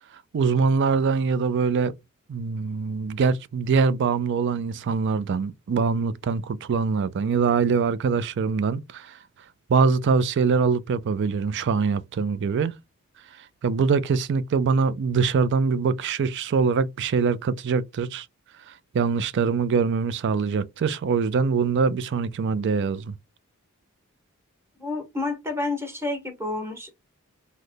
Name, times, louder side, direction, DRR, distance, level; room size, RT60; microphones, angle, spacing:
voice 1, 0.3-1.9 2.3-9.2 9.7-12.8 13.6-18.3 18.7-23.2, right 5 dB, 55° right, 0.4 m, -23 dB
voice 2, 24.8-26.9, left 2 dB, 10° right, 1.0 m, -29 dB
3.2 x 2.1 x 3.8 m
head